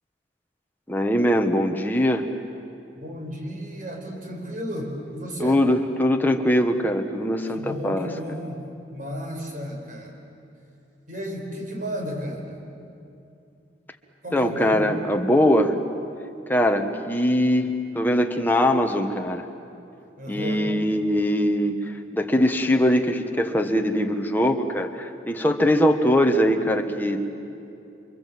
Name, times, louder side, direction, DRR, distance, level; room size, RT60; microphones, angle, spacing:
voice 1, 0.9-2.2 5.4-8.1 14.3-15.8 16.5-19.4 20.3-21.8 22.1-27.2, equal, 10° left, 4 dB, 1.5 m, -21 dB
voice 2, 2.9-5.6 7.5-10.1 11.1-12.6 14.2-14.9 20.2-20.7, equal, 50° right, 2 dB, 5.0 m, -33 dB
30.0 x 25.0 x 7.8 m, 2.6 s
head